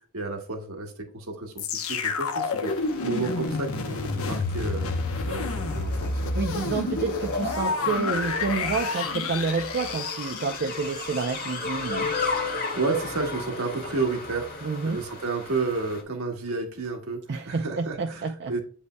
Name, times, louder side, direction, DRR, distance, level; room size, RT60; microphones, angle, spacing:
voice 1, 0.1-2.7 3.0-4.9 5.3-6.3 12.7-17.2 17.5-18.6, right 3 dB, 70° right, 2 dB, 1.4 m, -31 dB
sound 1, 1.6-11.6 12.2-12.3, left 3 dB, 75° left, 0.9 m, -29 dB
sound 2, 2.7-16.0, left 3 dB, 45° left, 1.4 m, -36 dB
voice 2, 6.3-12.1 14.6-15.0 17.3-18.6, right 4 dB, 50° right, 5 dB, 0.5 m, -29 dB
8.2 x 5.4 x 2.2 m, 0.42 s
head